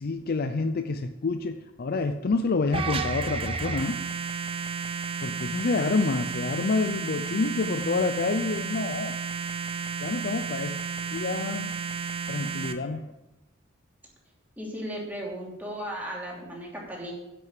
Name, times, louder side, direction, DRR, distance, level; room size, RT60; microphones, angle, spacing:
voice 1, 0.0-4.0 5.2-9.2 10.0-10.8 11.1-11.7 12.3-13.1, left 3 dB, 45° left, 8 dB, 0.5 m, -28 dB
sound 1, 2.7-12.7, right 5 dB, 25° right, 0.8 m, -32 dB
voice 2, 14.6-17.1, equal, 10° right, -3 dB, 2.9 m, -36 dB
10.5 x 6.3 x 7.5 m, 0.97 s
head